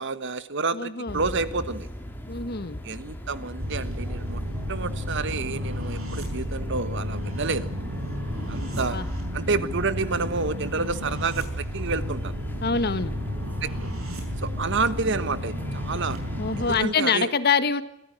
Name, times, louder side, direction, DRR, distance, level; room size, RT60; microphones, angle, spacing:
voice 1, 0.0-1.9 2.8-4.4 4.7-7.7 8.5-9.0 9.3-12.3 13.6-13.9 14.4-16.2 16.6-17.3, right 4 dB, 60° right, 14 dB, 1.3 m, -29 dB
voice 2, 0.7-1.2 2.3-2.8 8.7-9.0 12.6-13.2 16.4-17.8, left 5 dB, 50° left, 12 dB, 1.5 m, -25 dB
sound 1, 1.1-16.9, equal, 10° left, 3.1 m, -40 dB
sound 2, 3.6-16.8, equal, 85° right, 6.9 m, -32 dB
23.5 x 15.5 x 8.9 m, 0.81 s
head